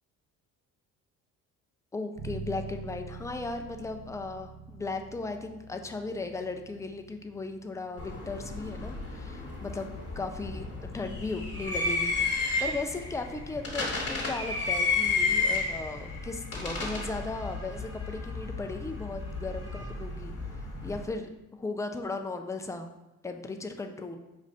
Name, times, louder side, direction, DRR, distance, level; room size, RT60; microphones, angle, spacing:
voice 1, 1.9-10.7 10.9-20.3 20.8-22.9 23.2-24.2, left 3 dB, 10° left, 5 dB, 0.3 m, -36 dB
Bass guitar, 2.2-11.9, right 4 dB, 55° right, 1.0 m, -47 dB
sound 1, 8.0-21.0, left 3 dB, 35° left, 1.4 m, -32 dB
5.3 x 2.5 x 3.2 m, 0.99 s
supercardioid pair, 65°, 40 cm